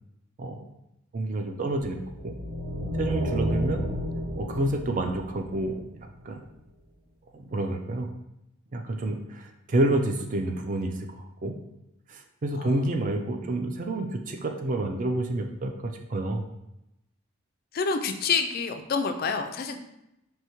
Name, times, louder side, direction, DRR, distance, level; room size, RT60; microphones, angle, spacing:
voice 1, 1.1-2.0 2.2-2.3 3.0-3.8 4.4-5.8 6.2-6.4 7.3-8.1 8.7-11.5 12.1-16.4, right 2 dB, 40° right, 4 dB, 0.4 m, -29 dB
sound 1, 1.8-6.2, equal, 65° right, 1.0 m, -31 dB
voice 2, 17.7-19.7, left 5 dB, 45° left, 6 dB, 0.3 m, -27 dB
4.7 x 2.7 x 2.9 m, 0.87 s
head